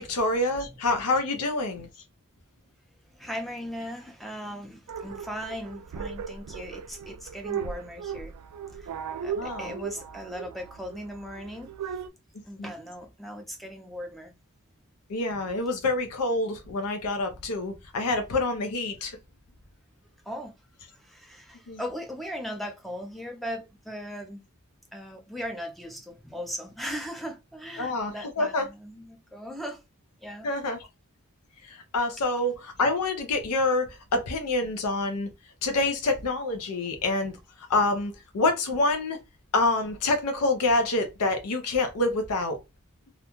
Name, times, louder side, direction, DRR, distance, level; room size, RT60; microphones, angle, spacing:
voice 1, 0.0-1.9 9.4-9.7 12.6-12.7 15.1-19.2 21.7-21.8 27.8-28.7 30.4-30.8 31.6-35.3 35.6-37.3 37.7-39.2 39.5-42.6, left 2 dB, 90° left, 0.5 m, -27 dB
voice 2, 3.1-8.3 8.7-8.9 9.2-12.0 12.5-14.3 20.3-20.5 20.9-24.4 24.9-29.8 30.2-30.5, equal, ahead, 0.4 m, -38 dB
sound 1, 4.9-12.1, right 7 dB, 90° right, 0.3 m, -37 dB
2.4 x 2.2 x 2.9 m
head